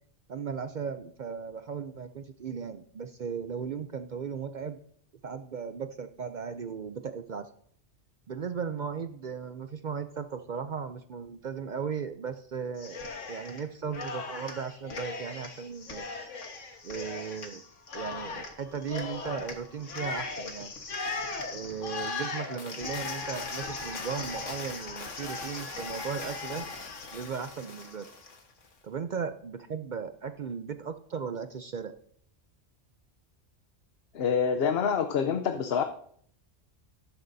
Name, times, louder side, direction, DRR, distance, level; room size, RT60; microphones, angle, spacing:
voice 1, 0.3-4.8 5.2-7.5 8.3-16.1 16.8-17.6 17.9-20.7 21.5-26.7 27.1-28.1 28.8-31.9, right 6 dB, 55° right, 9 dB, 0.5 m, -36 dB
Cheering, 12.8-13.6 13.9-28.4, left 3 dB, 80° left, 1.7 m, -38 dB
voice 2, 34.1-35.8, left 7 dB, 60° left, 7 dB, 0.9 m, -26 dB
13.0 x 11.0 x 2.7 m, 0.62 s
omnidirectional pair, 1.3 m